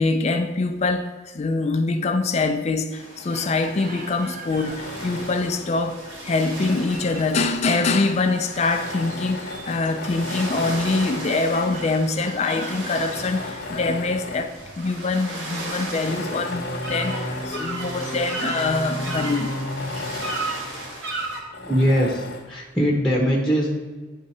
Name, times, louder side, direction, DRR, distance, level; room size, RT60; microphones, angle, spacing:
voice 1, 0.0-19.5, left 3 dB, 35° left, 7 dB, 0.4 m, -24 dB
sound 1, 2.9-21.4, right 1 dB, 70° right, 1.6 m, -34 dB
Chicken rooster, 3.3-4.8 7.8-9.1 11.2-12.9 14.8-16.3, right 2 dB, 40° right, 0.7 m, -42 dB
Tools, 4.5-5.6 6.3-7.9 8.6-11.5 12.2-12.3 12.8-14.6 15.0-15.1 15.9-18.4 18.8-18.9 19.2-20.6 21.5-22.5, left 2 dB, 55° left, 0.8 m, -36 dB
voice 2, 21.6-22.2 22.5-23.8, equal, 5° left, -2 dB, 0.8 m, -21 dB
9.7 x 3.6 x 4.2 m, 1.3 s
head